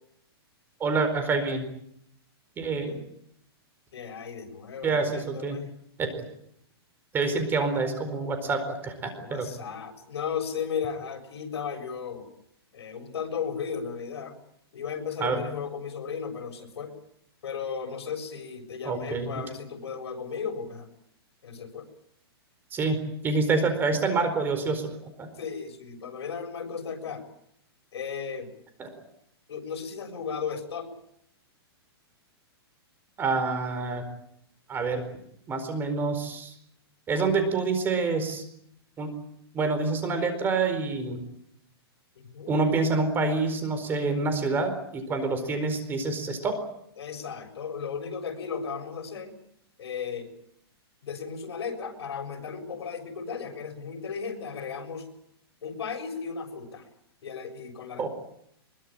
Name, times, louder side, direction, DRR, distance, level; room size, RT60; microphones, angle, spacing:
voice 1, 0.8-1.7 2.6-2.9 4.8-5.6 6.0-6.2 7.1-9.5 15.2-15.4 18.8-19.4 22.7-25.3 28.8-28.9 33.2-34.0 34.7-35.0 35.5-36.5 37.1-38.4 39.0-39.1 39.5-41.2 42.5-46.6 58.0-58.1, right 3 dB, 15° right, 9 dB, 4.5 m, -27 dB
voice 2, 3.9-5.7 9.2-12.3 12.7-14.3 14.7-16.9 17.4-20.9 21.4-21.9 25.4-27.2 27.9-28.5 29.5-30.9 37.4-37.6 42.2-42.6 47.0-49.3 49.8-50.3 51.0-55.1 55.6-56.8 57.2-58.1, left 6 dB, 80° left, 5 dB, 7.0 m, -35 dB
23.5 x 22.5 x 8.9 m, 0.73 s
hypercardioid pair, 160°, 14 cm